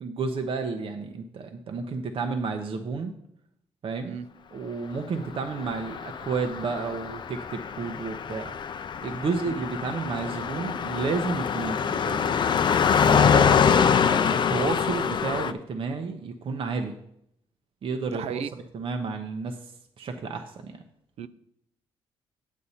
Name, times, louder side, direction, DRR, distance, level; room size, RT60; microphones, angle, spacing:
voice 1, 0.0-3.1 3.8-4.2 4.5-8.5 9.0-12.6 13.0-17.0 17.8-18.4 18.7-20.8, right 4 dB, 55° right, 0.8 m, -31 dB
Car passing by, 5.6-15.5, left 7 dB, 45° left, 0.4 m, -24 dB
voice 2, 18.1-18.5 21.2-21.3, right 7 dB, 75° right, 0.5 m, -34 dB
8.4 x 8.2 x 4.2 m
cardioid pair, 95°, 11 cm